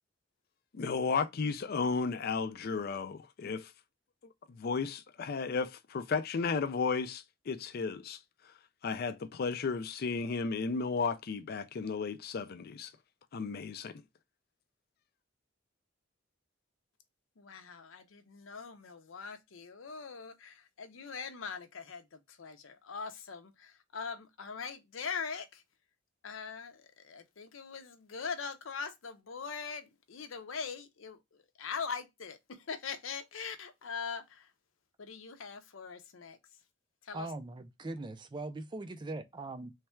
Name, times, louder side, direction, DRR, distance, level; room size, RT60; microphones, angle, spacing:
voice 1, 0.7-3.7 4.5-8.2 8.8-12.9 13.3-14.0, left 4 dB, 50° left, 0.4 m, -34 dB
voice 2, 17.4-25.6 26.2-34.5 35.0-36.4 37.0-37.3, left 5 dB, 90° left, 0.6 m, -42 dB
voice 3, 37.1-39.7, right 2 dB, 25° right, 0.4 m, -41 dB
3.2 x 2.3 x 4.3 m
head